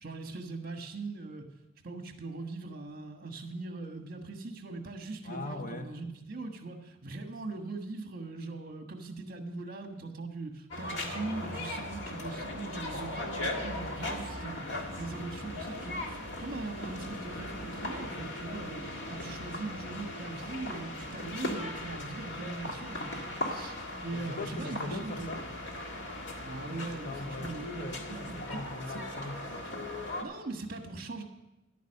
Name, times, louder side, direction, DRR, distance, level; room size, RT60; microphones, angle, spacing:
voice 1, 0.0-1.4 1.8-18.8 19.1-25.3 26.4-28.6 28.9-29.0 30.2-31.2, right 3 dB, 50° right, 5 dB, 1.4 m, -40 dB
voice 2, 5.2-5.9 24.1-25.5 26.7-30.3, left 3 dB, 40° left, 6 dB, 0.9 m, -41 dB
sound 1, 10.7-30.2, left 1 dB, 60° left, 1.9 m, -38 dB
11.0 x 9.3 x 6.5 m, 0.93 s
head